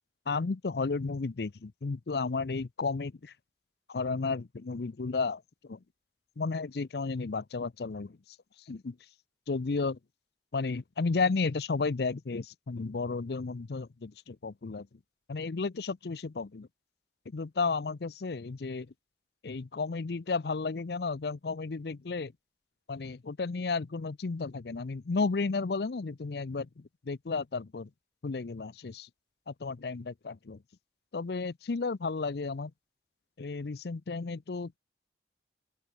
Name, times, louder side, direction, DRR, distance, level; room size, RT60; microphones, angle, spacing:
voice 1, 0.3-3.3 3.9-5.8 6.4-8.2 8.7-9.0 9.5-10.0 10.5-14.9 15.3-16.7 17.3-18.9 19.4-22.3 22.9-27.9 28.2-29.1 29.5-30.6 31.1-32.7 33.4-34.8, left 4 dB, 60° left, 0.5 m, -33 dB
open air
head